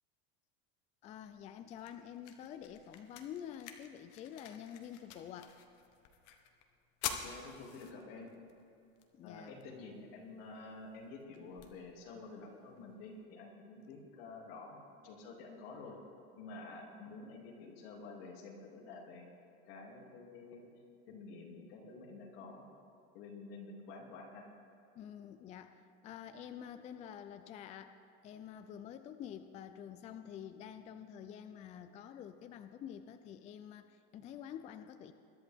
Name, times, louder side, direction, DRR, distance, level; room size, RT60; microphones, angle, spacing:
voice 1, 1.0-5.5 9.1-9.5 25.0-27.9 28.2-35.1, left 9 dB, 25° left, 9 dB, 0.4 m, -48 dB
sound 1, 1.2-13.2, left 8 dB, 55° left, 1.2 m, -49 dB
voice 2, 7.1-8.3 9.2-16.0 16.4-19.3 19.6-20.7 21.1-22.7 23.1-24.5, left 3 dB, 80° left, -1 dB, 2.8 m, -50 dB
21.5 x 11.0 x 3.5 m, 2.5 s
cardioid pair, 155°, 29 cm